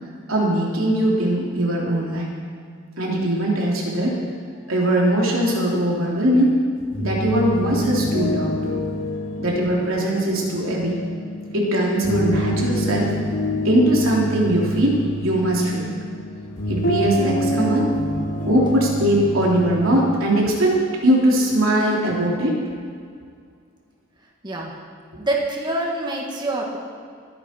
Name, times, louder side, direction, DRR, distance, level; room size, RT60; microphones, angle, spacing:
voice 1, 0.3-2.3 3.0-4.2 4.7-6.5 7.0-8.7 9.4-11.0 11.5-13.2 13.6-15.9 16.7-17.9 18.4-22.6, right 1 dB, 85° right, -3 dB, 3.2 m, -20 dB
sound 1, 6.8-20.2, equal, 70° left, 2.8 m, -27 dB
voice 2, 25.2-26.8, right 2 dB, 20° right, -2 dB, 1.9 m, -25 dB
21.0 x 10.5 x 4.5 m, 2.1 s
head